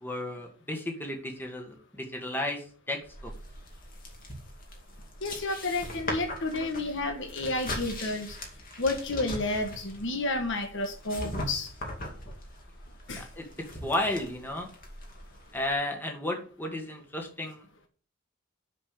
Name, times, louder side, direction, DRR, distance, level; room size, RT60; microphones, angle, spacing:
voice 1, 0.0-3.3 13.1-13.4 13.8-14.7 15.5-17.6, left 1 dB, 10° left, 2 dB, 1.7 m, -33 dB
sound 1, 3.0-15.7, left 1 dB, 40° left, 2.4 m, -40 dB
voice 2, 5.2-8.4 8.8-11.7 13.1-13.2, left 2 dB, 55° left, 4 dB, 1.4 m, -31 dB
7.4 x 6.4 x 6.7 m, 0.43 s
head